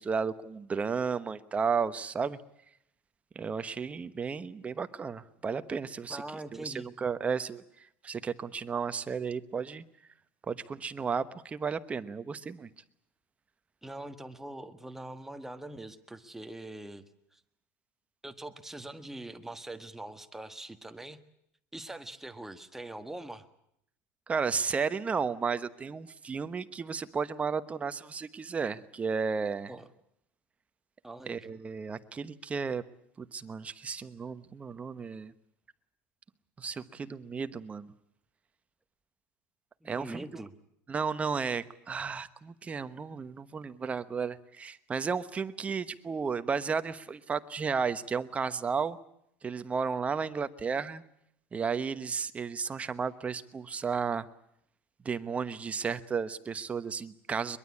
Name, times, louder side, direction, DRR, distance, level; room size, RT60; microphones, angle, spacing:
voice 1, 0.0-2.4 3.3-6.2 6.6-7.6 8.0-9.8 10.5-12.7 24.3-29.7 31.3-32.8 33.2-35.3 36.6-37.9 39.8-40.3 40.9-49.0 49.4-51.0 51.5-54.3 55.0-57.6, right 5 dB, 20° right, 12 dB, 1.1 m, -33 dB
voice 2, 6.1-6.9 13.8-17.1 17.3-17.4 18.2-21.2 21.7-23.5 29.7-29.9 31.0-31.5 39.8-40.5, right 1 dB, 5° right, 8 dB, 1.5 m, -43 dB
23.0 x 22.0 x 8.5 m, 0.76 s
supercardioid pair, 130°, 6 cm